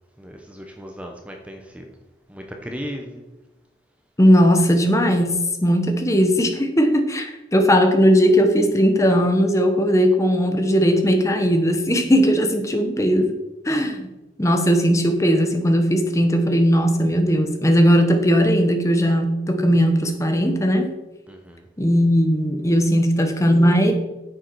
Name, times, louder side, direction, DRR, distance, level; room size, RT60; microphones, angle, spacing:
voice 1, 0.2-1.9 2.3-3.2 21.3-21.7, equal, 5° right, 2 dB, 0.8 m, -36 dB
voice 2, 4.2-13.3 13.6-14.1 14.4-20.9 21.8-23.9, equal, 15° left, 6 dB, 1.0 m, -18 dB
10.0 x 8.0 x 4.6 m, 1.0 s
head